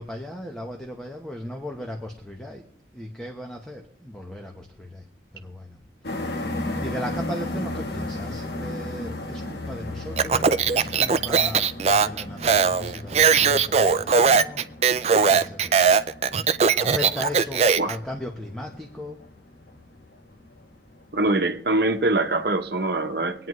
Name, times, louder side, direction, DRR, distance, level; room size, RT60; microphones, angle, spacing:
voice 1, 0.0-2.7 2.9-5.1 5.3-16.0 16.7-19.2, left 1 dB, 5° left, 1.0 m, -37 dB
sound 1, 6.0-22.6, left 2 dB, 65° left, 1.3 m, -36 dB
Speech, 10.2-18.0, right 5 dB, 35° right, 0.4 m, -20 dB
voice 2, 21.1-23.5, right 2 dB, 60° right, 1.0 m, -23 dB
23.5 x 9.4 x 3.1 m
head